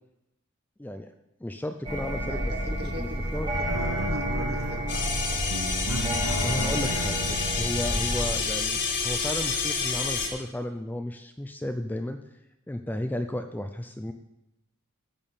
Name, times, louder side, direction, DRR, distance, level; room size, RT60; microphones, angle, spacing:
voice 1, 0.8-1.1 1.4-2.5 3.0-3.5 6.4-12.2 12.7-14.1, left 1 dB, 10° left, 7 dB, 0.4 m, -33 dB
sound 1, 1.8-8.3, equal, 25° right, 1.7 m, -30 dB
voice 2, 2.2-5.1, right 2 dB, 50° right, 4 dB, 1.3 m, -41 dB
sound 2, 3.7-9.0, right 2 dB, 85° right, 1.0 m, -36 dB
sound 3, 4.9-10.3, left 5 dB, 55° left, 2.1 m, -29 dB
10.5 x 6.7 x 5.5 m, 0.89 s
head